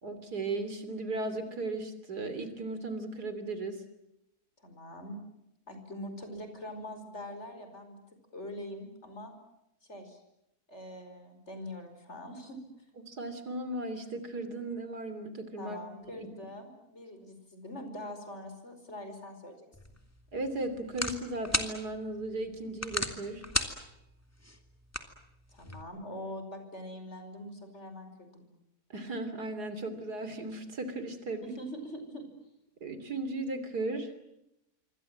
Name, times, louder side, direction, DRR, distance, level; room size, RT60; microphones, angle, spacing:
voice 1, 0.0-3.8 13.0-15.8 16.2-16.3 20.3-23.5 28.9-31.4 32.8-34.1, right 2 dB, 85° right, 11 dB, 3.6 m, -36 dB
voice 2, 4.6-5.2 5.7-8.0 8.3-9.4 9.9-10.2 10.7-12.6 15.6-19.7 25.5-28.5 31.4-32.2, left 1 dB, 45° left, 7 dB, 5.6 m, -43 dB
sound 1, 19.7-25.8, left 1 dB, 10° left, 2.2 m, -37 dB
27.0 x 24.5 x 7.7 m, 0.84 s
omnidirectional pair, 1.7 m